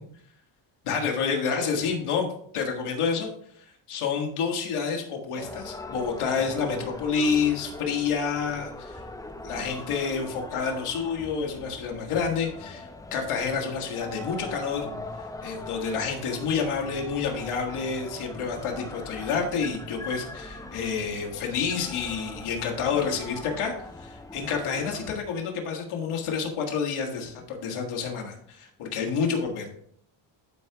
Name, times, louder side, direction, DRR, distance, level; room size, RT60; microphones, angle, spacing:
voice 1, 0.8-2.3 2.5-3.3 3.6-9.0 9.4-14.9 15.2-29.7, left 5 dB, 80° left, 1 dB, 1.7 m, -29 dB
sound 1, 5.3-25.2, left 2 dB, 10° left, 0.4 m, -41 dB
12.0 x 4.7 x 2.9 m, 0.64 s
cardioid pair, 115°, 49 cm